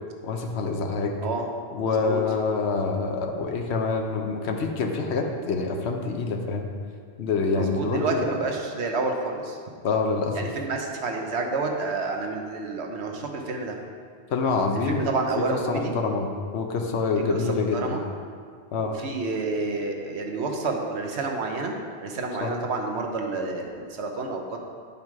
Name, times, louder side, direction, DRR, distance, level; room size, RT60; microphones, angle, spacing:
voice 1, 0.2-1.2 1.7-6.7 7.2-8.3 9.8-10.4 14.3-15.1 15.4-18.0 18.7-19.0 22.4-22.5, left 4 dB, 85° left, 3 dB, 1.0 m, -26 dB
voice 2, 1.8-2.2 7.5-9.6 10.3-13.8 14.9-16.0 17.3-18.0 19.0-21.8 22.0-24.6, right 3 dB, 85° right, 2 dB, 1.2 m, -29 dB
9.0 x 5.5 x 4.7 m, 2.1 s
omnidirectional pair, 1.1 m